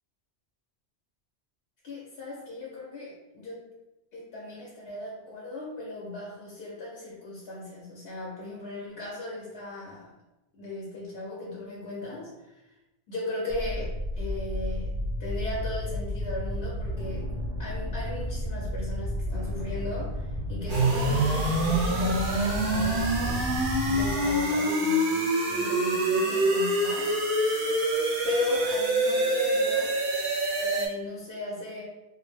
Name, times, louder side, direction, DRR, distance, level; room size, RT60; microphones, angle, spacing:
voice 1, 1.8-3.7 4.1-10.1 10.5-12.7 13.1-14.9 15.2-17.3 17.6-23.5 23.9-27.3 28.2-29.9 30.6-31.8, left 2 dB, 70° left, -4 dB, 0.8 m, -37 dB
sound 1, 13.5-24.2, left 1 dB, 85° right, 0.9 m, -32 dB
sound 2, 20.7-30.9, right 1 dB, 60° right, 0.6 m, -25 dB
2.4 x 2.0 x 3.1 m, 0.98 s
omnidirectional pair, 1.1 m